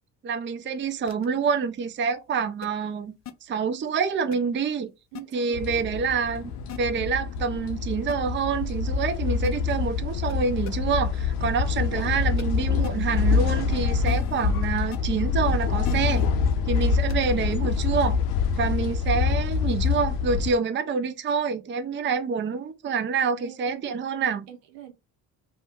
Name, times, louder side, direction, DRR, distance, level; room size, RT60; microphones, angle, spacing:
voice 1, 0.2-3.1 3.4-4.9 5.3-6.5 6.8-16.3 16.7-18.2 18.6-24.5, right 5 dB, 25° right, 0.5 m, -27 dB
sound 1, 1.1-1.3 2.6-2.7 3.2-3.3 4.3-4.4 5.1-5.2 6.7-6.8 8.1-8.2 9.4-9.5 10.3-10.4 10.6-10.7 12.4-12.5 12.8-12.9 14.0-14.5 14.9-15.0 15.8-16.3 17.1-17.3, left 11 dB, 35° left, 0.5 m, -37 dB
voice 2, 5.1-5.9 21.9-22.1 23.4-24.0 24.5-24.9, right 11 dB, 75° right, 0.7 m, -44 dB
sound 2, 5.5-20.5, left 5 dB, 75° left, 0.6 m, -26 dB
2.6 x 2.2 x 3.4 m
hypercardioid pair, 50°, 50 cm